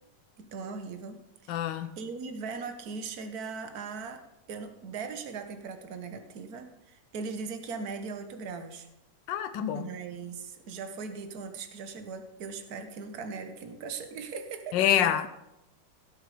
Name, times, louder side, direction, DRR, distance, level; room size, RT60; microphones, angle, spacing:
voice 1, 0.5-8.9 9.7-15.1, right 5 dB, 60° right, 1.6 m, -39 dB
voice 2, 1.5-1.9 9.3-9.9 14.7-15.3, left 10 dB, 80° left, 1.4 m, -26 dB
17.0 x 7.4 x 5.0 m
omnidirectional pair, 2.0 m